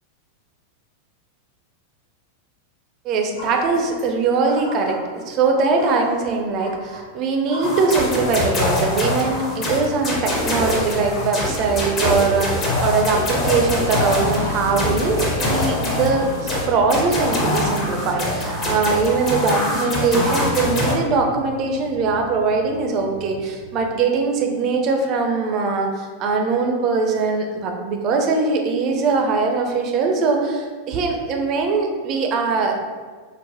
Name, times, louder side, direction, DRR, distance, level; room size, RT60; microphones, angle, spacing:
voice 1, 3.0-32.8, right 4 dB, 35° right, 3 dB, 0.4 m, -21 dB
sound 1, 3.4-4.1 4.4-5.2 5.7-7.1 7.5-8.6 9.6-9.8 10.0-14.8, left 1 dB, 75° left, 1.1 m, -38 dB
sound 2, 7.6-20.9, left 1 dB, 30° left, 0.7 m, -24 dB
Motorcycle, 9.4-23.9, left 2 dB, 90° left, 0.4 m, -36 dB
3.9 x 2.0 x 2.7 m, 1.5 s
figure-of-eight pair, 90°, 0 cm